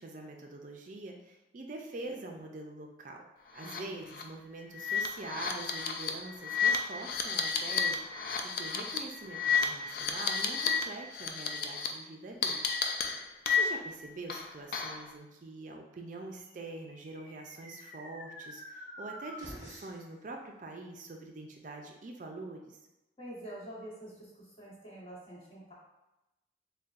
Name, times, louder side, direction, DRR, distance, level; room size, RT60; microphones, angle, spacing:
voice 1, 0.0-3.2 3.5-12.6 13.5-22.8, right 2 dB, 45° right, 2 dB, 0.4 m, -44 dB
sound 1, 3.6-3.8 4.1-4.2 4.8-10.8 11.1-11.9 12.4-13.9 14.3-15.1, left 6 dB, 55° left, 0.4 m, -31 dB
voice 2, 3.6-4.0 23.2-25.7, right 1 dB, 30° left, -7 dB, 1.2 m, -47 dB
sound 2, 16.5-20.1, equal, 15° left, 1.0 m, -48 dB
6.6 x 2.2 x 2.4 m, 0.97 s
head